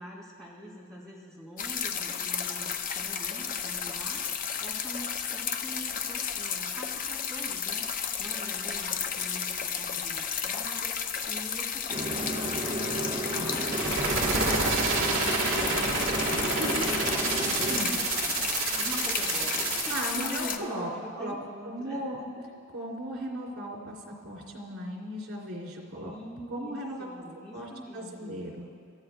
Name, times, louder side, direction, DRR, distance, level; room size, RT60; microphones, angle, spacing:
voice 1, 0.0-18.4 18.7-22.4 25.9-28.5, equal, 5° left, -8 dB, 4.8 m, -45 dB
sound 1, 1.6-20.6, left 7 dB, 40° left, 0.6 m, -33 dB
sound 2, 11.9-17.8, right 1 dB, 30° right, 1.5 m, -33 dB
sound 3, 13.5-20.4, right 4 dB, 65° right, 1.6 m, -29 dB
voice 2, 16.6-16.9 17.7-18.0 19.9-21.3 21.6-22.2 22.7-26.1 26.5-27.2 27.5-28.7, right 1 dB, 90° right, -2 dB, 3.1 m, -36 dB
29.5 x 14.0 x 2.4 m, 2.2 s
head